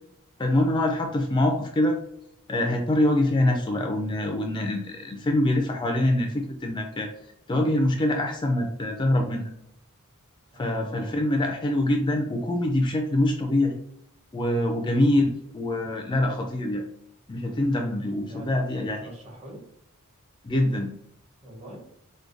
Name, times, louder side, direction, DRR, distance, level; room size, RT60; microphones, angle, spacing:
voice 1, 0.4-2.0 2.5-7.1 7.5-9.5 10.5-13.8 14.3-16.8 17.3-19.0 20.4-20.9, left 1 dB, 20° left, 3 dB, 0.3 m, -24 dB
voice 2, 10.5-11.2 14.5-14.7 18.3-18.5 18.7-19.6 21.4-21.9, equal, 30° right, -1 dB, 1.0 m, -44 dB
4.6 x 2.2 x 2.5 m, 0.73 s
head